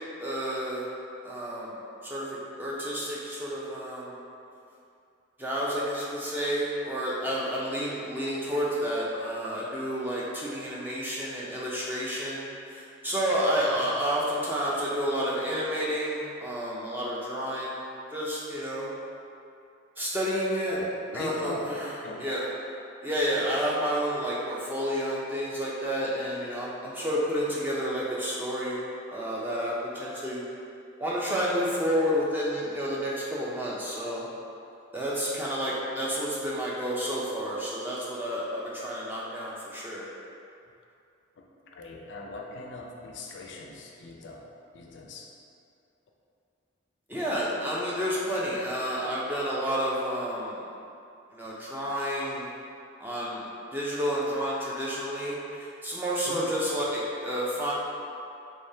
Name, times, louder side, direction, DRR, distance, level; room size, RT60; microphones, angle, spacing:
voice 1, 0.2-0.9 1.2-1.7 2.0-4.2 5.4-17.8 18.1-18.9 20.0-20.8 21.1-21.9 22.2-22.4 23.0-28.8 29.1-30.4 31.0-34.3 34.9-40.1 47.1-50.6 51.3-52.5 53.0-53.4 53.7-57.7, equal, 10° right, -6 dB, 0.4 m, -30 dB
voice 2, 20.7-21.7 22.0-22.3 41.4-44.5 44.7-45.3 56.2-56.5, left 2 dB, 60° left, 0 dB, 0.4 m, -40 dB
3.5 x 3.4 x 2.7 m, 2.5 s
head